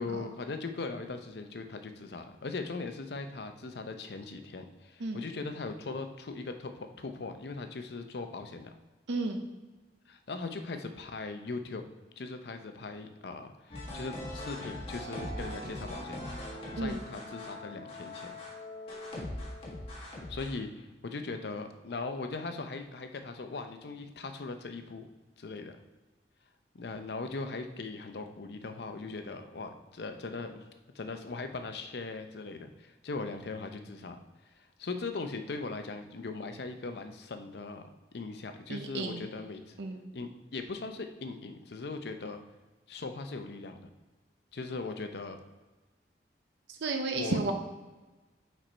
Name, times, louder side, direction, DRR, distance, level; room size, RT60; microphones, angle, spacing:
voice 1, 0.0-8.7 10.1-11.8 12.2-16.3 16.8-18.4 19.9-25.1 25.4-25.8 26.7-30.6 30.9-34.2 34.6-37.8 38.1-39.7 40.1-42.4 42.9-43.9 44.5-45.4 47.1-47.5, left 3 dB, 70° left, 7 dB, 0.6 m, -39 dB
voice 2, 9.1-9.4 16.8-17.0 38.7-39.3 39.8-40.1 46.7-47.5, right 3 dB, 80° right, 3 dB, 0.6 m, -33 dB
sound 1, 13.7-20.6, left 1 dB, 35° left, 1.3 m, -41 dB
5.1 x 4.3 x 4.4 m, 1.2 s
head